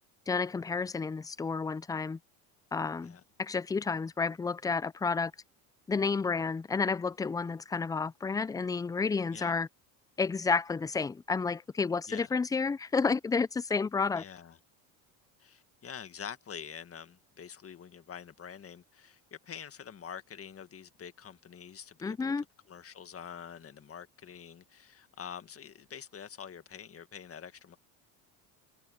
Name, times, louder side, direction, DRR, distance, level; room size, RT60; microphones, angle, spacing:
voice 1, 0.3-2.2 2.7-5.3 5.9-9.7 10.2-14.2 22.0-22.4, left 4 dB, 10° left, 0.3 m, -31 dB
voice 2, 14.2-14.6 15.4-22.3 22.7-27.8, left 8 dB, 35° left, 1.8 m, -46 dB
supercardioid pair, 100°, 42 cm